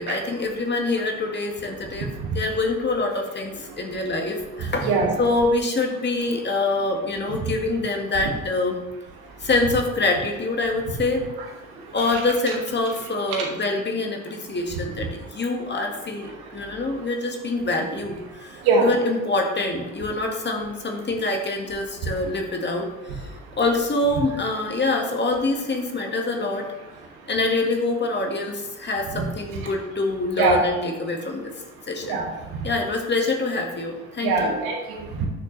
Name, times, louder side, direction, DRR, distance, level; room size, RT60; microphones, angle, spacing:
voice 1, 0.0-2.1 2.3-4.9 5.2-8.8 9.4-11.3 11.9-26.7 27.3-31.5 31.9-32.2 32.6-34.6, left 2 dB, 25° left, 2 dB, 1.8 m, -25 dB
voice 2, 4.8-5.2 12.0-12.2 13.3-13.5 18.7-18.9 29.1-29.2 30.4-30.6 32.1-32.3 34.2-35.3, right 4 dB, 60° right, 1 dB, 2.2 m, -22 dB
11.0 x 6.3 x 3.3 m, 1.2 s
figure-of-eight pair, 65°, 42 cm